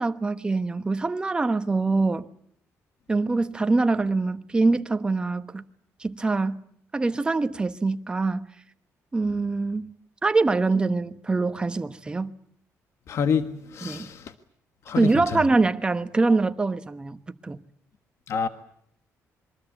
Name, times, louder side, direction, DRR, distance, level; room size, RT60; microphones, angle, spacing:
voice 1, 0.0-2.3 3.1-5.6 6.0-6.6 6.9-8.5 9.1-9.9 10.2-12.3 13.8-14.1 14.9-17.6, right 3 dB, 15° right, 1.1 m, -24 dB
voice 2, 13.1-14.2 14.9-15.1 18.3-18.5, left 6 dB, 55° left, 1.4 m, -27 dB
27.0 x 23.0 x 8.2 m
cardioid pair, 155°, 6 cm